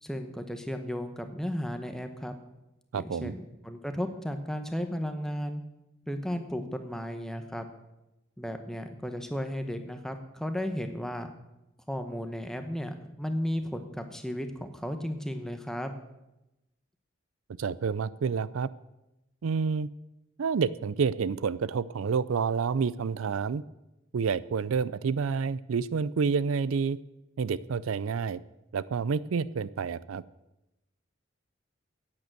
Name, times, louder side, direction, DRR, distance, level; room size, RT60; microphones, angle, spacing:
voice 1, 0.0-2.3 2.9-5.6 6.1-7.7 8.4-11.3 11.9-15.9, equal, ahead, 6 dB, 1.0 m, -34 dB
voice 2, 2.9-3.3 17.6-18.7 19.4-19.9 20.4-23.6 24.1-27.0 27.4-28.4 28.7-30.2, right 5 dB, 90° right, 19 dB, 0.4 m, -29 dB
10.5 x 9.0 x 7.8 m, 0.94 s
head